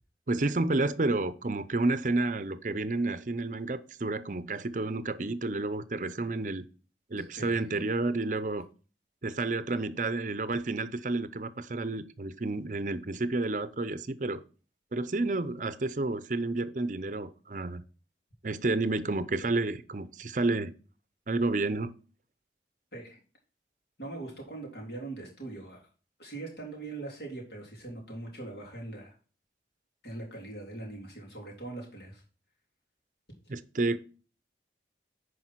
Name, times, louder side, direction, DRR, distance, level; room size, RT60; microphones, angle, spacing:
voice 1, 0.3-6.6 7.1-8.7 9.2-14.4 14.9-17.8 18.4-20.7 21.3-21.9 33.5-34.0, right 2 dB, 45° right, 0.6 m, -30 dB
voice 2, 7.2-7.6 22.9-23.2 24.0-25.9 26.2-29.1 30.0-32.2, right 2 dB, 65° left, 3.5 m, -41 dB
9.8 x 5.0 x 4.5 m
head